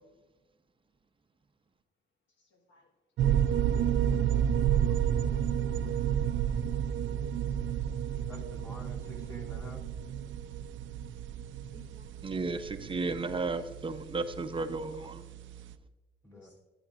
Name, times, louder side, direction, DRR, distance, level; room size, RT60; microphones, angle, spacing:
voice 1, 2.4-2.9 4.7-5.5 7.2-7.3 7.6-7.7 11.7-12.4 16.3-16.6, left 4 dB, 70° left, 2 dB, 1.4 m, -59 dB
sound 1, 3.2-15.8, right 9 dB, 75° right, 0.5 m, -31 dB
voice 2, 8.3-9.9 14.9-15.1 16.2-16.6, left 1 dB, 15° left, -2 dB, 2.7 m, -48 dB
voice 3, 12.2-15.2, right 3 dB, 25° right, 8 dB, 0.7 m, -34 dB
13.5 x 9.0 x 2.4 m, 1.3 s
cardioid pair, 90°, 20 cm